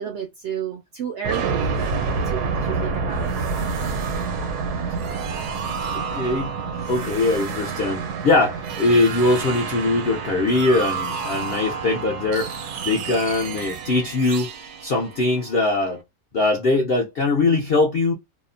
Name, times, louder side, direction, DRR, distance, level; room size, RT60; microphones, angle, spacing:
voice 1, 0.0-1.7 2.2-3.3, right 8 dB, 70° right, 0.6 m, -31 dB
sound 1, 1.2-15.9, right 5 dB, 90° right, 1.2 m, -28 dB
voice 2, 5.9-6.6 6.9-14.5 14.8-16.0 16.3-18.1, left 2 dB, 70° left, 0.5 m, -21 dB
2.8 x 2.1 x 2.5 m
omnidirectional pair, 1.6 m